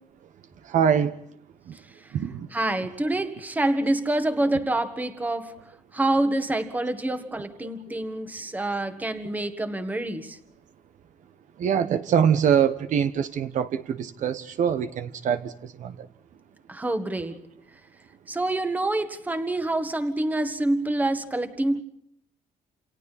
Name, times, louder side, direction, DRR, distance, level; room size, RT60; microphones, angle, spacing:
voice 1, 0.6-1.2 1.7-1.8 2.1-2.5 11.6-16.1, right 8 dB, 60° right, 10 dB, 1.2 m, -24 dB
voice 2, 2.5-5.5 5.9-10.4 16.7-17.4 18.3-21.8, right 2 dB, 10° right, 8 dB, 1.7 m, -26 dB
29.5 x 29.0 x 4.2 m, 0.72 s
cardioid pair, 180°, 15 cm